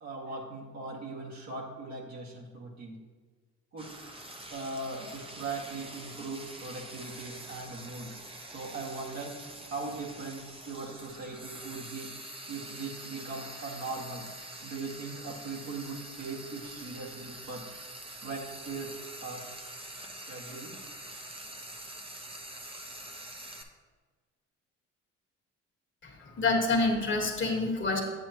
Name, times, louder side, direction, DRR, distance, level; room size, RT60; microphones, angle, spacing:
voice 1, 0.0-3.0 3.7-3.9 4.5-8.1 8.5-9.3 9.7-12.1 12.5-14.2 14.6-17.6 18.2-18.9 19.2-19.4 20.3-20.7, right 3 dB, 65° right, -3 dB, 1.9 m, -39 dB
Frying (food), 3.8-23.6, right 1 dB, 20° right, 0.8 m, -45 dB
voice 2, 26.0-28.0, left 3 dB, 40° left, 1 dB, 1.5 m, -27 dB
8.2 x 7.7 x 2.9 m, 1.4 s
cardioid pair, 90°, 30 cm